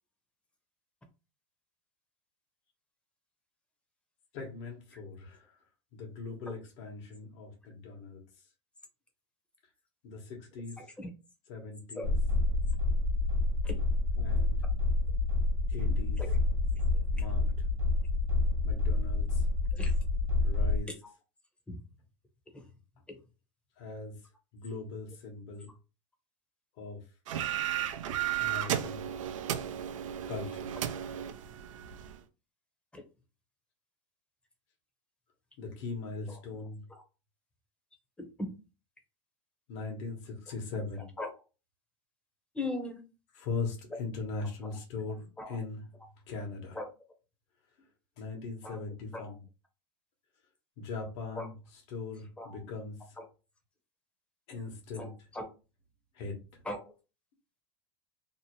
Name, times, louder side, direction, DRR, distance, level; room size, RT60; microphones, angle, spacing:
voice 1, 4.3-5.5 5.9-8.2 10.0-10.8 11.5-12.1 14.2-14.4 15.7-16.2 17.1-17.5 18.6-19.4 20.4-20.9 23.8-24.2 24.5-25.7 26.8-27.0 28.4-29.1 30.3-30.7 35.6-36.8 39.7-41.2 43.3-45.8 46.3-46.8 48.2-49.4 50.8-53.0 54.5-55.1 56.1-56.3, left 4 dB, 65° left, 1.0 m, -40 dB
voice 2, 10.8-11.1 11.9-12.1 13.6-13.8 16.2-16.4 19.7-19.9 21.0-21.1 21.7-21.8 22.5-22.6 32.9-33.0 36.3-36.4 38.2-38.5 41.2-41.3 42.5-43.0 45.4-45.6 46.7-46.9 48.6-48.8 49.1-49.3 51.3-51.5 52.4-52.6 53.2-53.3 55.0-55.5 56.6-56.9, left 2 dB, 5° left, 0.6 m, -39 dB
sound 1, 12.0-20.8, left 2 dB, 50° right, 0.9 m, -28 dB
sound 2, 27.3-32.2, right 11 dB, 90° right, 0.4 m, -34 dB
2.7 x 2.0 x 2.9 m
supercardioid pair, 125°, 16 cm